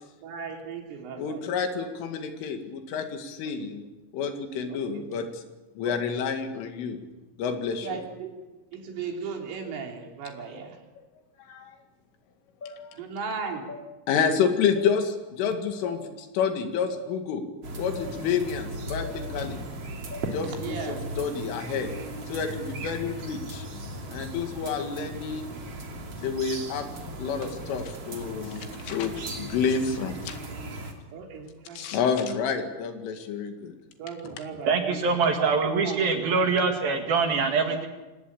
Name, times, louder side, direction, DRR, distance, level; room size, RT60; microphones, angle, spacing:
voice 1, 0.2-1.4 4.7-5.0 5.8-6.0 7.8-8.4 8.7-10.8 13.0-13.6 20.6-21.0 31.1-32.0 34.0-35.5 35.8-36.0, right 5 dB, 75° right, 2 dB, 5.8 m, -36 dB
voice 2, 1.2-3.9 4.1-5.4 5.8-7.0 7.4-8.0 11.5-11.8 12.6-13.0 14.1-17.4 17.8-19.6 20.3-21.9 22.3-23.7 24.1-25.4 26.2-26.9 27.2-30.4 31.8-33.7, left 6 dB, 75° left, 6 dB, 4.5 m, -29 dB
sound 1, 12.6-12.8 13.7-13.8 14.7-14.9 15.8-16.0 16.9-17.0 18.0-18.1 19.0-19.2 20.1-20.3, left 3 dB, 20° left, 4.3 m, -40 dB
sound 2, 17.6-30.9, right 1 dB, 35° right, 3.0 m, -37 dB
voice 3, 34.7-37.9, right 4 dB, 55° right, 4 dB, 3.3 m, -24 dB
25.0 x 19.0 x 8.7 m, 1.1 s
omnidirectional pair, 5.8 m